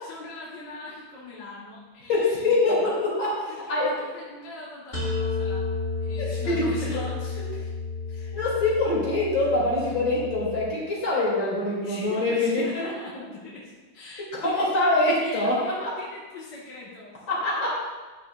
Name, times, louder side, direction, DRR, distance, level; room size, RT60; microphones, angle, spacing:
voice 1, 0.0-2.8 3.5-5.7 6.0-7.2 11.8-14.7 15.2-17.2, left 3 dB, 65° left, -6 dB, 2.1 m, -41 dB
voice 2, 2.1-3.3 3.7-3.9 6.2-6.6 6.9-7.0 7.4-7.5 8.3-12.9 14.1-15.5 15.8-15.9 17.3-17.7, left 2 dB, 85° left, -6 dB, 3.5 m, -24 dB
sound 1, 4.9-10.7, left 4 dB, 30° left, 2.7 m, -31 dB
13.5 x 9.1 x 2.4 m, 1.3 s
omnidirectional pair, 2.1 m